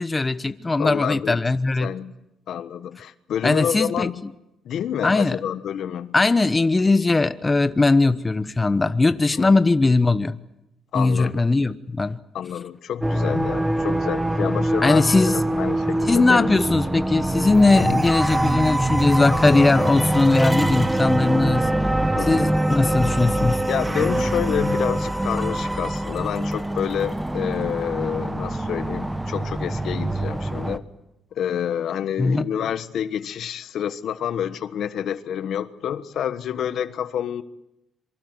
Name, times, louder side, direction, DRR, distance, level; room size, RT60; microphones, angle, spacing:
voice 1, 0.0-1.9 3.4-4.1 5.0-5.4 6.1-10.4 10.9-12.2 14.8-15.4 16.1-21.7 22.2-23.6 32.2-32.5, left 3 dB, 20° left, 12 dB, 1.0 m, -19 dB
voice 2, 0.8-1.4 1.8-2.1 2.5-4.2 4.6-6.1 9.3-9.5 10.9-11.5 12.3-15.1 15.3-16.5 17.7-18.0 19.2-19.4 20.6-20.7 22.1-22.5 23.7-30.8 31.3-37.4, left 9 dB, 70° left, 12 dB, 1.3 m, -28 dB
sound 1, 13.0-30.8, right 1 dB, 10° right, 1.4 m, -24 dB
26.0 x 24.0 x 8.0 m, 0.88 s
cardioid pair, 90°, 0 cm